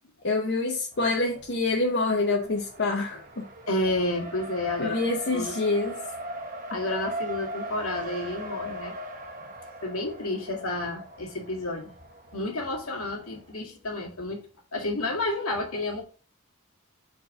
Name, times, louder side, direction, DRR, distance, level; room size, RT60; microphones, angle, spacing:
voice 1, 0.2-3.4 4.8-6.0, left 3 dB, 50° left, 0 dB, 0.8 m, -26 dB
Race car auto racing, 0.9-13.5, right 1 dB, 40° right, 1.2 m, -40 dB
voice 2, 3.7-5.0 5.3-5.6 6.7-8.9 9.2-9.4 9.8-11.9 12.3-14.4 14.7-16.0, left 2 dB, 70° left, -1 dB, 1.9 m, -30 dB
4.5 x 4.3 x 5.2 m, 0.38 s
head